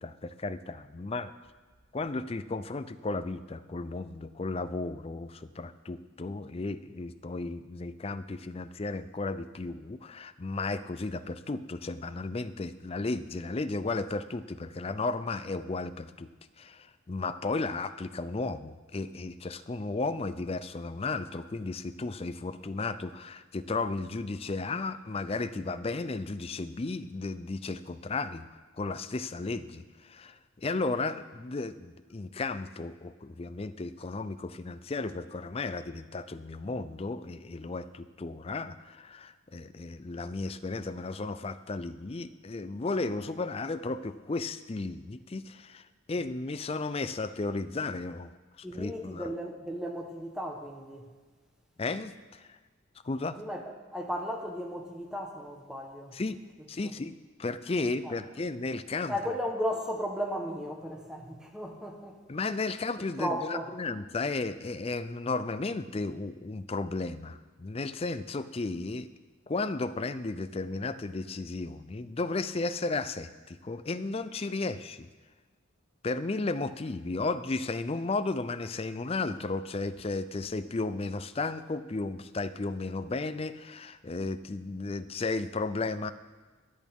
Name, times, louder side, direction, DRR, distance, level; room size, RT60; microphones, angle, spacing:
voice 1, 0.0-1.3 1.9-16.3 16.6-28.5 28.8-45.8 46.1-48.3 48.6-49.3 51.8-52.5 53.0-53.4 56.1-56.4 56.7-59.2 62.3-69.1 69.5-75.1 76.0-86.1, left 3 dB, 30° left, 0.4 m, -34 dB
voice 2, 48.6-51.1 53.3-56.2 56.8-56.9 58.0-58.2 59.1-62.2 63.2-63.7, equal, 5° right, 1.1 m, -35 dB
24.0 x 8.4 x 3.6 m
head